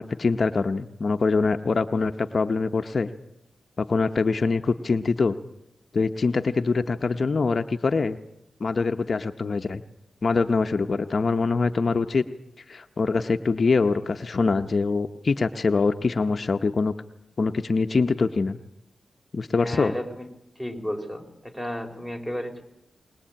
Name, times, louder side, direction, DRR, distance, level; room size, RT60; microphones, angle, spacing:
voice 1, 0.0-3.1 3.8-5.4 5.9-8.2 8.6-9.8 10.2-12.2 12.7-16.9 17.4-18.6 19.3-20.0, left 4 dB, 45° left, 7 dB, 0.8 m, -24 dB
voice 2, 19.6-20.3 20.6-22.6, equal, 10° right, 4 dB, 4.0 m, -33 dB
21.5 x 21.0 x 8.8 m, 0.85 s
wide cardioid pair, 90°, 0 cm